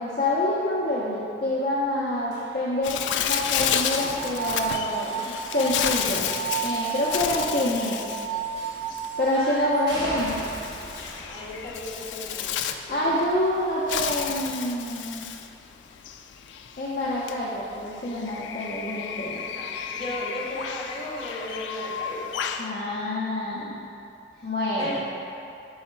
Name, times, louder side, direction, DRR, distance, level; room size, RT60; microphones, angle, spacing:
voice 1, 0.0-6.3 6.6-8.1 9.2-10.4 12.9-15.3 16.8-19.4 22.6-23.8 24.4-25.0, left 1 dB, 55° left, -7 dB, 0.7 m, -27 dB
sound 1, 2.3-6.4 8.6-9.2 9.9-15.7 16.0-16.4 17.7-17.8, equal, 20° right, 1.5 m, -42 dB
Bird, 2.8-22.7, left 8 dB, 85° left, 0.3 m, -32 dB
sound 2, 4.0-9.8, right 8 dB, 45° right, 1.1 m, -33 dB
voice 2, 9.3-10.2 11.3-12.5 12.8-13.1 19.5-22.4 24.7-25.0, left 1 dB, 30° left, -8 dB, 1.4 m, -36 dB
5.6 x 4.2 x 4.4 m, 2.7 s
head